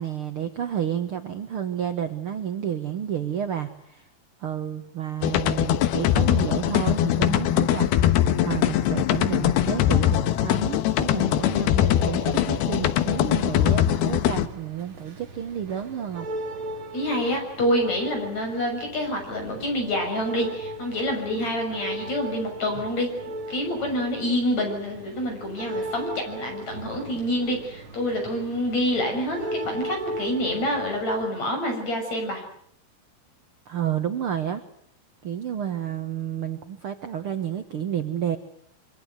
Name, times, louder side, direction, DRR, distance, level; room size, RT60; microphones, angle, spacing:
voice 1, 0.0-4.1 4.4-16.3 33.7-34.6 35.2-38.4, right 9 dB, 75° right, 7 dB, 1.2 m, -30 dB
sound 1, 5.2-14.5, left 12 dB, 85° left, 3.2 m, -22 dB
sound 2, 11.8-31.2, right 1 dB, 40° right, 2.6 m, -38 dB
voice 2, 16.9-23.1 23.5-32.4, left 1 dB, 45° left, 3 dB, 7.9 m, -27 dB
25.5 x 24.5 x 8.2 m, 0.68 s
omnidirectional pair, 4.4 m